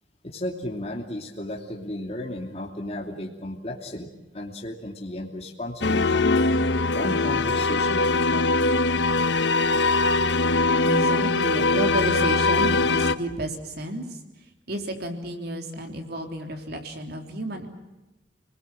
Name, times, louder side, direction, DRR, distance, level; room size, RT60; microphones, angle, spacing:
voice 1, 0.2-4.1 4.3-6.2 6.9-8.5, left 1 dB, 35° left, 1 dB, 2.8 m, -34 dB
sound 1, 5.8-13.1, left 3 dB, 65° left, 0.9 m, -22 dB
voice 2, 10.8-14.2 14.7-17.7, right 1 dB, 60° right, 4 dB, 3.5 m, -31 dB
29.5 x 20.0 x 7.7 m, 1.1 s
head